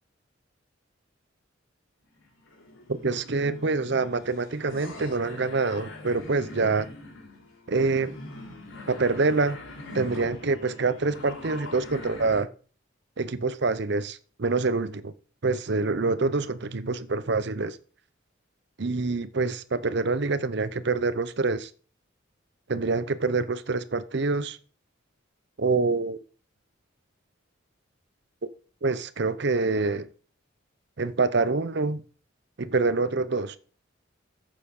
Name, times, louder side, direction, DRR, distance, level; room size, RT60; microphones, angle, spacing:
sound 1, 2.2-12.4, left 2 dB, 85° left, 3.9 m, -43 dB
voice 1, 3.0-6.9 7.7-8.1 8.9-9.6 9.9-12.5 13.2-15.1 15.4-17.8 18.8-21.7 22.7-24.6 25.6-26.2 28.8-30.1 31.0-32.0 32.6-33.6, right 3 dB, 55° right, 0.7 m, -26 dB
8.9 x 6.8 x 5.4 m
head